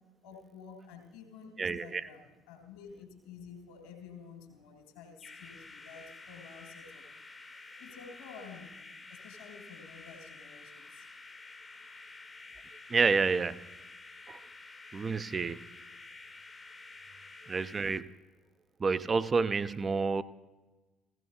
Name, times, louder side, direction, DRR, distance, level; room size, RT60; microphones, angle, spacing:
voice 1, 0.2-2.2 2.5-7.1 7.8-8.8 9.1-11.1 17.2-17.3, left 6 dB, 65° left, 3 dB, 2.0 m, -50 dB
voice 2, 1.6-2.1 12.9-13.7 14.3-14.4 14.9-15.6 17.5-18.1 18.8-20.2, right 4 dB, 30° right, 13 dB, 0.4 m, -29 dB
sound 1, 5.2-18.0, left 3 dB, 20° left, 0.7 m, -50 dB
16.0 x 14.0 x 2.8 m, 1.2 s
figure-of-eight pair, 60°, 0 cm